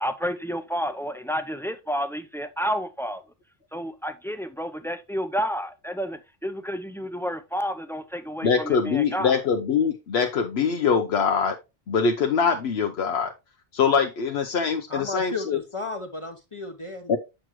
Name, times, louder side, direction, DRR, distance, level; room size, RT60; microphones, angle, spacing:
voice 1, 0.0-3.2 3.7-9.4, equal, 5° left, 0.4 m, -30 dB
voice 2, 8.4-11.6 11.9-13.3 13.7-15.6 17.1-17.2, left 6 dB, 85° left, 1.0 m, -23 dB
voice 3, 14.9-17.1, left 3 dB, 35° left, 0.8 m, -34 dB
7.6 x 6.1 x 3.0 m
omnidirectional pair, 1.0 m